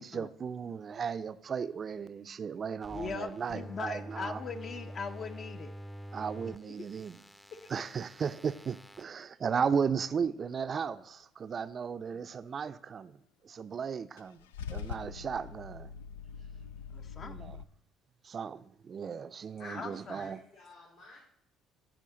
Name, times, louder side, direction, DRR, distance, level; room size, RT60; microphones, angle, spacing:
voice 1, 0.0-4.4 6.1-7.2 7.7-13.2 13.4-15.9 17.2-17.6 18.2-20.4, right 6 dB, 45° right, 0.5 m, -35 dB
sound 1, 2.8-9.0, equal, 5° left, 0.6 m, -47 dB
voice 2, 2.9-5.7 6.5-6.9 12.1-12.2 16.9-17.5 19.8-20.3, left 5 dB, 45° left, 0.8 m, -41 dB
Car / Engine starting / Idling, 14.2-17.6, left 7 dB, 85° left, 0.3 m, -43 dB
voice 3, 19.6-21.2, left 2 dB, 70° left, 2.9 m, -49 dB
14.0 x 4.9 x 3.8 m
hypercardioid pair, 60°, 0 cm